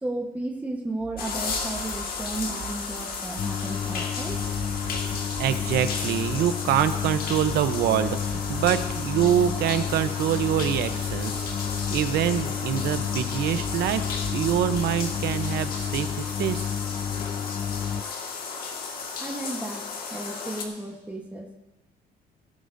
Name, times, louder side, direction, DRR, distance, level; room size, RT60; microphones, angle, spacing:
voice 1, 0.0-4.4 19.2-21.6, right 2 dB, 10° right, 1 dB, 1.2 m, -34 dB
sound 1, 1.0-16.5, right 5 dB, 40° right, 1.5 m, -44 dB
sound 2, 1.2-20.6, left 5 dB, 60° left, 1.8 m, -34 dB
sound 3, 3.4-18.0, left 8 dB, 35° left, 0.4 m, -31 dB
voice 2, 5.4-11.5 11.9-14.0 14.3-16.7, right 10 dB, 75° right, 11 dB, 0.8 m, -25 dB
16.5 x 13.5 x 2.7 m, 1.1 s
cardioid pair, 110°, 17 cm